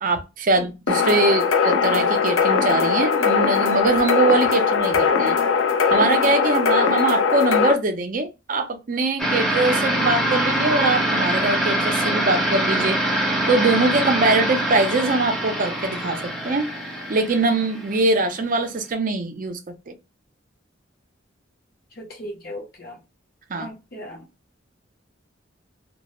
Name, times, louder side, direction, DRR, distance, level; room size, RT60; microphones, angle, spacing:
voice 1, 0.0-5.4 5.9-13.0 13.5-16.7 17.1-19.9 23.5-23.7, right 2 dB, 45° right, 0.5 m, -22 dB
sound 1, 0.9-7.7, left 6 dB, 85° left, 0.4 m, -20 dB
sound 2, 9.2-18.3, right 1 dB, ahead, 0.6 m, -24 dB
voice 2, 22.0-23.0 23.6-24.2, equal, 50° left, 0.7 m, -37 dB
2.2 x 2.0 x 2.9 m
head